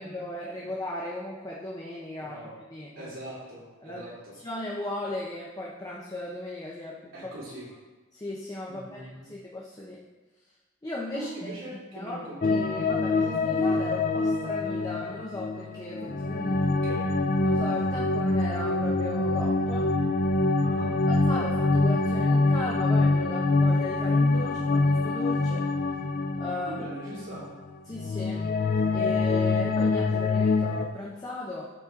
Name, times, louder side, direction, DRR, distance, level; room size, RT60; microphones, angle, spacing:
voice 1, 0.0-2.4 2.7-3.1 3.8-4.0 4.4-7.0 8.1-10.0 10.8-11.3 11.9-16.7 17.4-19.9 21.1-25.7 26.4-26.8 27.9-28.5 28.9-31.7, left 1 dB, 20° left, -4 dB, 0.8 m, -36 dB
voice 2, 2.2-2.5 2.9-4.3 7.1-7.7 8.7-9.3 11.1-12.6 16.7-17.1 20.6-20.9 26.7-27.5, right 1 dB, 75° right, -7 dB, 3.0 m, -41 dB
sound 1, 12.4-27.7 27.9-30.8, left 3 dB, 45° left, 0.4 m, -25 dB
13.0 x 4.4 x 3.7 m, 1.2 s
head